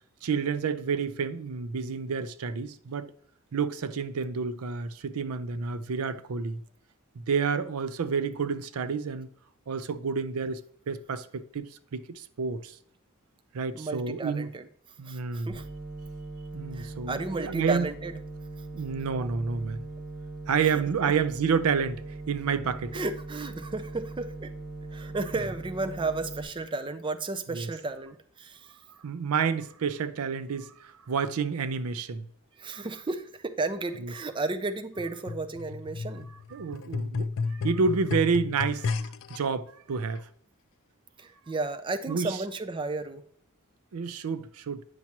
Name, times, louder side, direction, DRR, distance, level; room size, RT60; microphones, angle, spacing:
voice 1, 0.2-3.1 3.5-6.6 7.2-9.3 9.7-10.6 10.9-12.8 13.5-14.5 15.0-15.6 16.5-17.9 18.7-19.8 20.5-22.9 27.5-27.7 29.0-32.3 34.0-34.1 36.5-40.3 42.1-42.4 43.9-44.8, right 5 dB, 80° right, 0.5 m, -29 dB
voice 2, 13.7-14.7 15.0-15.6 16.7-18.2 19.2-19.3 20.7-21.1 22.9-24.5 24.9-28.7 32.6-36.3 41.2-43.2, right 3 dB, 25° right, 0.4 m, -33 dB
sound 1, 15.5-26.4, right 2 dB, 55° right, 3.5 m, -40 dB
sound 2, 35.0-39.4 40.2-40.3, left 4 dB, 60° left, 0.4 m, -33 dB
9.4 x 5.9 x 2.9 m
head